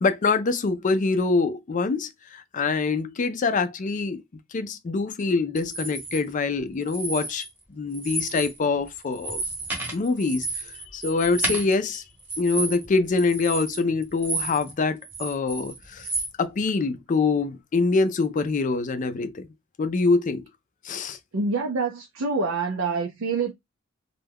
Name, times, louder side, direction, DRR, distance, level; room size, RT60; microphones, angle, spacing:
voice 1, 0.0-4.2 4.5-9.4 9.9-12.0 12.4-16.1 16.4-19.5 19.8-20.5 20.8-21.2, left 4 dB, 40° left, 0.4 m, -25 dB
sound 1, 5.6-6.2 6.8-7.6 7.9-8.6 8.9-14.7 15.0-16.3, right 2 dB, 10° right, 0.9 m, -32 dB
voice 2, 21.3-23.5, right 4 dB, 85° right, 0.5 m, -26 dB
2.2 x 2.2 x 3.4 m
head